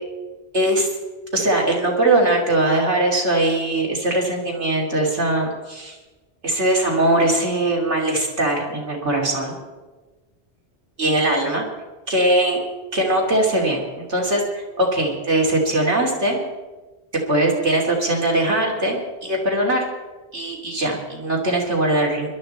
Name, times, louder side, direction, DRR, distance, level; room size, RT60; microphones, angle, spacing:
voice 1, 0.5-0.9 1.3-6.0 6.4-9.5 11.0-11.6 12.1-12.6 12.9-16.4 17.3-19.8 20.3-22.3, right 1 dB, 90° right, -1 dB, 3.4 m, -21 dB
21.5 x 12.0 x 4.4 m, 1.2 s
omnidirectional pair, 1.1 m